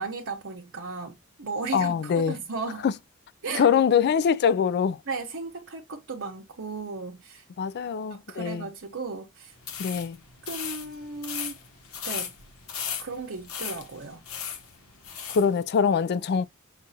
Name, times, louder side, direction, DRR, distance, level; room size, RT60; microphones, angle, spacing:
voice 1, 0.0-2.8 3.4-3.7 5.1-7.4 8.1-9.5 10.4-11.6 12.0-12.4 13.0-14.2, right 4 dB, 60° right, 0.9 m, -35 dB
voice 2, 1.7-2.4 2.8-2.9 3.5-5.0 7.6-8.7 9.8-10.2 15.3-16.5, left 7 dB, 50° left, 0.3 m, -23 dB
sound 1, 9.6-15.5, left 8 dB, 80° left, 1.0 m, -37 dB
6.0 x 2.4 x 2.7 m
head